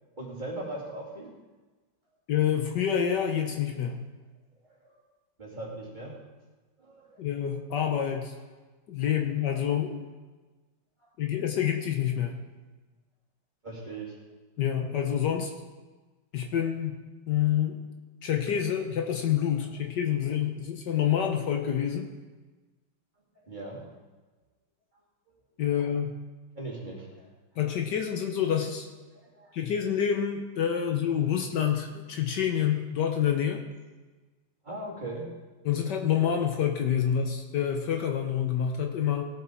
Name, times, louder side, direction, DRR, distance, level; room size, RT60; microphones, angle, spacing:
voice 1, 0.1-1.3 4.6-5.0 5.4-6.1 6.8-7.2 11.0-11.1 13.6-14.2 23.3-24.0 26.5-27.3 29.2-29.6 34.6-35.3, right 2 dB, 25° right, -5 dB, 2.7 m, -39 dB
voice 2, 2.3-4.0 7.2-8.3 8.9-10.0 11.2-12.3 14.6-15.5 16.3-17.0 17.3-17.8 18.2-22.1 25.6-26.1 27.6-28.9 29.5-33.6 35.6-39.2, left 9 dB, 65° left, 3 dB, 1.4 m, -27 dB
17.5 x 7.6 x 4.5 m, 1.3 s
omnidirectional pair, 2.1 m